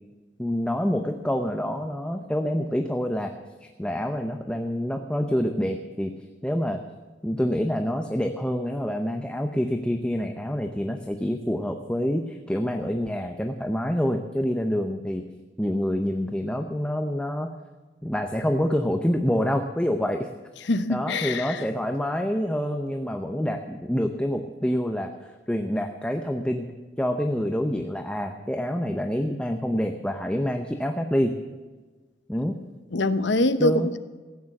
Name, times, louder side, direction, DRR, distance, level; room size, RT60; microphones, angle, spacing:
voice 1, 0.4-3.3 3.6-6.1 6.4-6.8 7.2-15.3 15.6-17.5 18.0-20.3 20.9-25.1 25.5-26.7 27.0-31.4 32.3-32.6 33.6-33.9, equal, 5° left, 0.8 m, -27 dB
voice 2, 20.7-21.6 32.9-34.0, left 2 dB, 70° left, 0.9 m, -24 dB
15.0 x 9.3 x 7.1 m
head